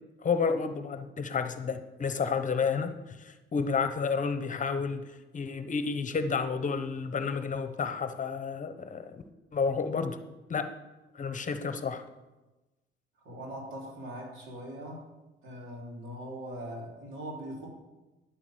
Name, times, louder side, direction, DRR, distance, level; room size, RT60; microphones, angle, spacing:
voice 1, 0.2-5.0 5.3-9.2 9.5-10.2 10.5-10.7 11.1-12.0, left 5 dB, 40° left, 9 dB, 0.9 m, -31 dB
voice 2, 13.2-15.1 15.4-17.7, equal, 85° right, -3 dB, 3.6 m, -41 dB
9.9 x 6.0 x 7.7 m, 1.1 s
cardioid pair, 90°, 20 cm